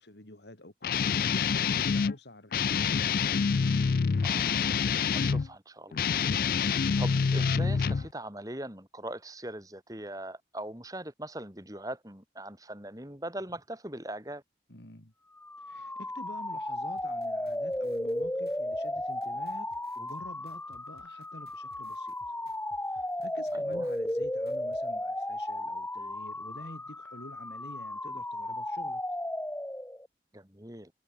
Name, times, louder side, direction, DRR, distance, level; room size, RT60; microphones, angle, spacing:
voice 1, 0.0-3.0 14.7-15.1 15.6-19.7 20.0-22.2 22.8-29.0, left 1 dB, 80° left, 3.9 m, -48 dB
Guitar, 0.8-2.1 2.5-5.5 5.9-8.1, left 6 dB, 55° left, 0.4 m, -27 dB
voice 2, 4.2-4.8 5.1-14.4 23.5-23.9 30.3-30.9, right 1 dB, 20° right, 3.4 m, -41 dB
sound 1, 15.4-30.1, left 1 dB, 10° left, 0.8 m, -34 dB
sound 2, 17.0-24.8, right 1 dB, 65° right, 6.6 m, -62 dB
head